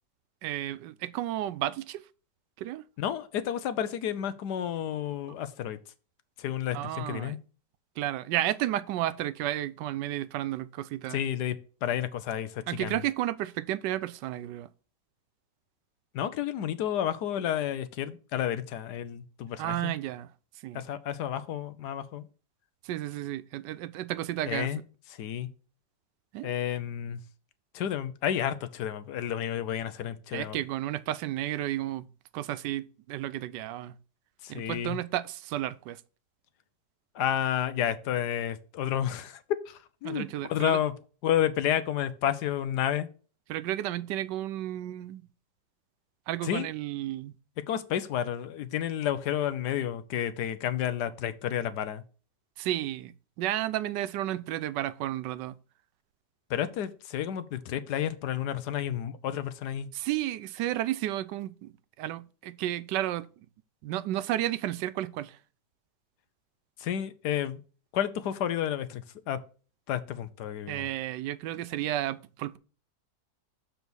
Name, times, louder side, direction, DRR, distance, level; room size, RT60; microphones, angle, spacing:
voice 1, 0.4-2.0 2.6-2.8 6.7-7.4 8.0-11.2 12.7-14.7 19.6-20.3 20.6-20.8 22.8-24.7 26.3-26.5 30.3-32.1 32.3-33.9 34.5-36.0 40.0-40.8 43.5-45.2 46.3-47.3 52.6-55.6 59.9-63.3 63.8-65.4 70.7-72.6, right 13 dB, 90° right, 1.2 m, -32 dB
voice 2, 3.0-5.8 6.4-7.4 11.1-11.5 11.8-13.0 16.1-19.9 20.7-22.3 24.5-24.8 25.2-25.5 26.4-27.2 27.7-30.6 34.4-35.0 37.1-39.4 39.7-40.9 41.2-43.1 46.4-46.7 47.7-52.0 56.5-59.9 66.8-67.6 67.9-69.4 69.9-70.9, left 10 dB, 75° left, 1.3 m, -31 dB
7.0 x 4.0 x 6.2 m
omnidirectional pair, 1.8 m